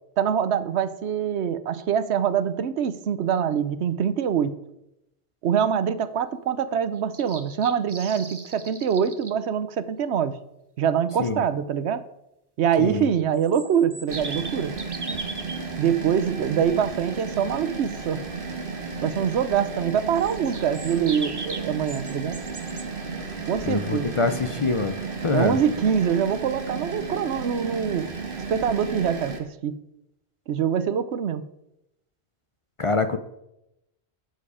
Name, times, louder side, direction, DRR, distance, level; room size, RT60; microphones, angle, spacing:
voice 1, 0.2-4.5 5.4-10.3 10.8-12.0 12.6-14.7 15.8-18.2 19.0-22.4 23.5-24.1 25.3-28.1 28.5-29.7 30.5-31.4, right 8 dB, 90° right, 14 dB, 1.0 m, -24 dB
sound 1, 7.0-9.3 13.1-15.6 20.2-22.8, right 3 dB, 25° right, 0.9 m, -38 dB
sound 2, 14.1-29.4, right 4 dB, 55° right, 1.6 m, -34 dB
voice 2, 23.7-24.9 25.2-25.6 32.8-33.2, left 3 dB, 40° left, 9 dB, 0.5 m, -24 dB
11.5 x 7.5 x 4.9 m, 0.86 s
omnidirectional pair, 1.1 m